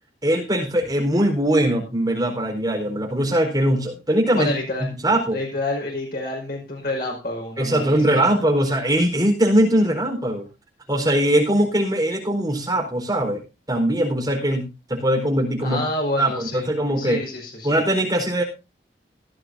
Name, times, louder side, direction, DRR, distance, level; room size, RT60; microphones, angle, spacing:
voice 1, 0.2-4.5 5.0-5.4 7.6-10.4 10.9-13.4 13.7-15.8 16.2-17.2 17.6-18.4, right 1 dB, 20° right, 0 dB, 4.3 m, -21 dB
voice 2, 4.4-4.9 5.3-8.4 15.6-16.7 17.0-17.7, left 2 dB, 55° left, -1 dB, 5.5 m, -28 dB
17.0 x 11.5 x 2.7 m, 0.28 s
head